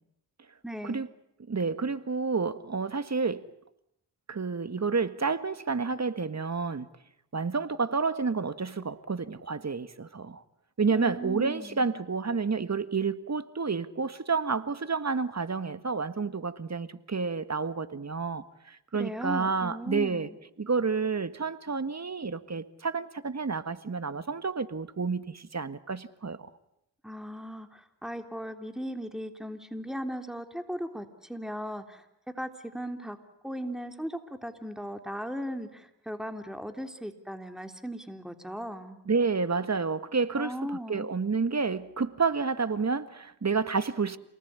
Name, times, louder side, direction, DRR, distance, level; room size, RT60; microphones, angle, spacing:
voice 1, 0.6-1.1 10.9-11.9 18.9-20.3 27.0-32.1 32.4-33.2 33.4-39.0 40.3-41.1, equal, ahead, 3.5 m, -37 dB
voice 2, 1.5-3.5 4.3-6.9 7.3-10.4 10.8-20.3 20.6-26.5 39.1-40.6 40.9-44.2, right 4 dB, 35° right, 1.9 m, -30 dB
28.5 x 19.5 x 9.7 m
supercardioid pair, 45°, 44 cm